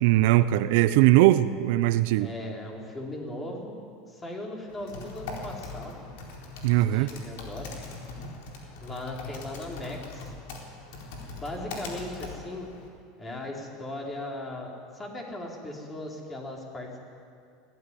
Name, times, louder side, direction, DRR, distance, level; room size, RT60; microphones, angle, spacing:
voice 1, 0.0-2.3 6.6-7.1, right 15 dB, 70° right, 13 dB, 0.7 m, -20 dB
voice 2, 2.2-3.8 4.1-6.0 6.9-7.7 8.8-10.3 11.3-12.7 13.2-17.0, left 1 dB, 20° left, 0 dB, 4.3 m, -38 dB
Typing, 4.7-12.9, left 3 dB, 75° left, 4.2 m, -41 dB
18.5 x 15.0 x 9.9 m, 2.3 s
supercardioid pair, 125°, 0 cm